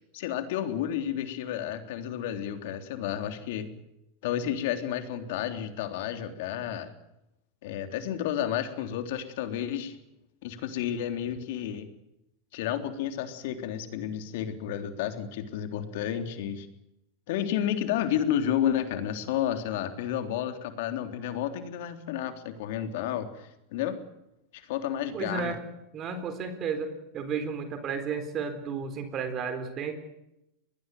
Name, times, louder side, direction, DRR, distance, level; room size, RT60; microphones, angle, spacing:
voice 1, 0.0-3.7 4.2-6.9 7.6-10.0 10.4-11.9 12.5-16.7 17.3-24.0 24.5-25.6, left 10 dB, 65° left, 7 dB, 3.4 m, -31 dB
voice 2, 25.1-25.6 25.9-29.9, right 5 dB, 35° right, 9 dB, 4.0 m, -33 dB
23.0 x 19.5 x 9.3 m, 0.87 s
hypercardioid pair, 120°, 0 cm